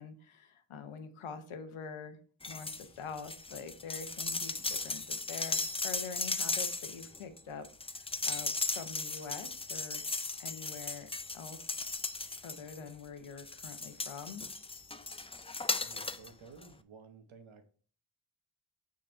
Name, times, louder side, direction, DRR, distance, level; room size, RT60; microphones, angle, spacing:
voice 1, 0.0-2.2 2.5-10.0 10.4-11.6 12.4-14.4, left 5 dB, 85° left, 9 dB, 0.9 m, -45 dB
sound 1, 2.4-2.9 3.2-12.9 13.4-16.3 16.6-16.7, left 3 dB, 15° left, 0.4 m, -37 dB
voice 2, 15.8-17.6, right 5 dB, 75° right, 7 dB, 1.1 m, -54 dB
6.5 x 4.1 x 4.3 m, 0.43 s
cardioid pair, 50°, 48 cm